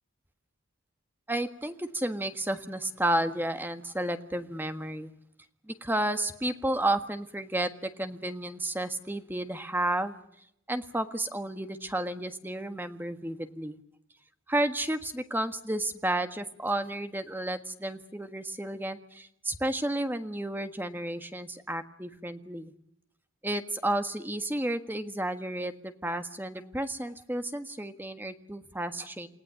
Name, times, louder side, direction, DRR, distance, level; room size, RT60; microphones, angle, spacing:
voice 1, 1.3-5.1 5.7-10.1 10.7-13.8 14.5-22.7 23.4-29.3, right 1 dB, 10° right, 8 dB, 1.5 m, -32 dB
29.0 x 17.5 x 9.6 m, 0.74 s
head